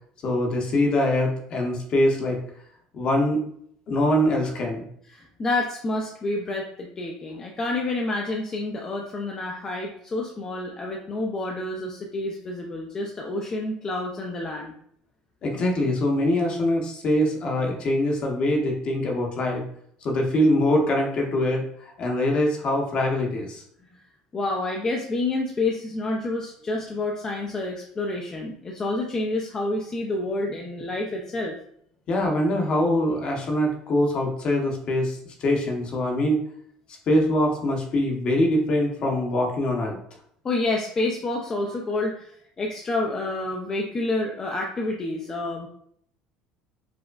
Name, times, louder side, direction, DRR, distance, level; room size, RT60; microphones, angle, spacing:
voice 1, 0.2-2.4 2.9-3.4 3.9-4.8 15.4-19.6 20.0-21.6 22.0-23.6 32.1-36.4 37.1-40.0, left 1 dB, 45° left, 0 dB, 0.9 m, -23 dB
voice 2, 5.1-14.7 23.9-24.0 24.3-31.6 40.4-45.7, left 2 dB, 30° left, 0 dB, 0.4 m, -28 dB
4.9 x 2.1 x 2.4 m, 0.67 s
supercardioid pair, 105°, 2 cm